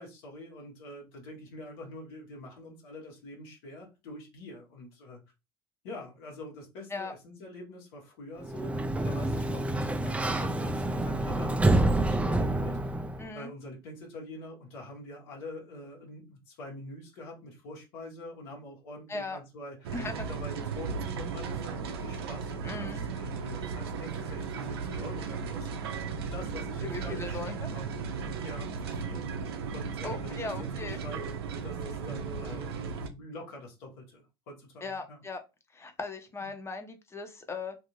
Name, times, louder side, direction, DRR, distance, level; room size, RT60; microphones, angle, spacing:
voice 1, 0.0-5.2 5.8-12.9 13.3-19.9 20.3-25.9 26.2-35.2 36.4-36.5, left 1 dB, 75° left, -1 dB, 1.1 m, -45 dB
Sliding door, 8.4-13.3, right 1 dB, 10° right, 0.4 m, -27 dB
voice 2, 13.2-13.5 19.1-19.4 19.9-20.3 22.6-23.1 26.8-27.7 30.0-31.0 34.8-35.4 35.7-37.8, left 3 dB, 20° left, 7 dB, 0.8 m, -38 dB
sound 1, 19.8-33.1, right 5 dB, 85° right, 0.5 m, -36 dB
2.5 x 2.5 x 3.0 m, 0.26 s
hypercardioid pair, 75°, 13 cm